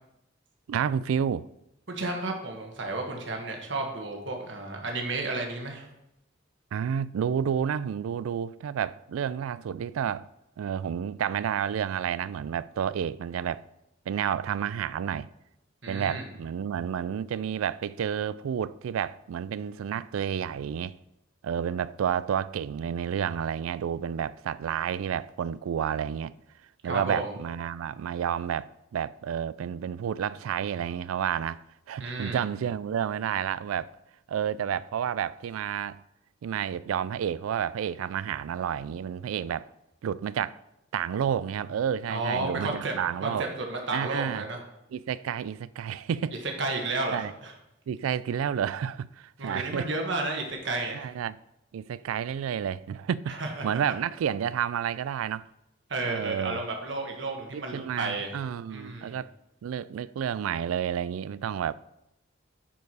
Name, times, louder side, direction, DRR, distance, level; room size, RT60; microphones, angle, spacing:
voice 1, 0.7-1.4 6.7-10.3 10.6-13.6 14.1-15.3 15.9-20.9 21.4-26.3 26.8-31.6 31.9-33.9 34.3-36.0 36.4-39.7 40.0-40.6 40.9-43.5 43.9-44.4 44.9-46.3 47.1-47.3 47.9-49.9 50.9-51.4 51.7-55.4 56.0-56.6 57.5-59.3 59.6-61.7, right 8 dB, 90° right, 0.3 m, -30 dB
voice 2, 1.9-5.9 15.8-16.3 26.8-27.3 32.0-32.4 42.1-42.9 43.2-44.6 46.6-47.5 49.4-51.1 53.3-53.8 55.9-58.3 58.7-59.2, right 2 dB, 60° right, 1.4 m, -32 dB
9.9 x 4.6 x 4.8 m
head